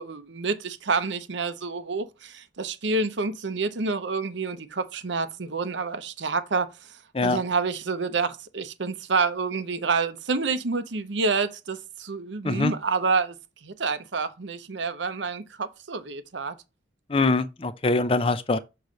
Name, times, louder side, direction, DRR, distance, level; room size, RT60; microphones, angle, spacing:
voice 1, 0.0-6.9 7.2-13.4 13.6-16.5, right 4 dB, 70° right, 0.8 m, -28 dB
voice 2, 17.1-18.6, left 3 dB, 30° left, 0.5 m, -23 dB
6.7 x 3.2 x 5.1 m
head